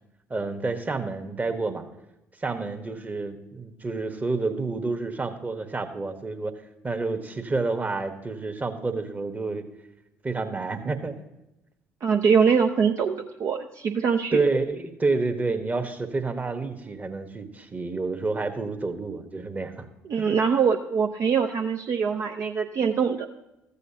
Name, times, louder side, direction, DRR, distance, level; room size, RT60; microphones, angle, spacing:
voice 1, 0.3-1.8 2.4-6.6 6.8-9.7 10.2-11.3 14.3-19.9 20.2-20.4, right 3 dB, 20° right, 7 dB, 1.2 m, -29 dB
voice 2, 12.0-14.4 20.1-23.3, right 6 dB, 45° right, 2 dB, 0.6 m, -23 dB
14.0 x 8.2 x 2.8 m, 0.93 s
figure-of-eight pair, 50°, 7 cm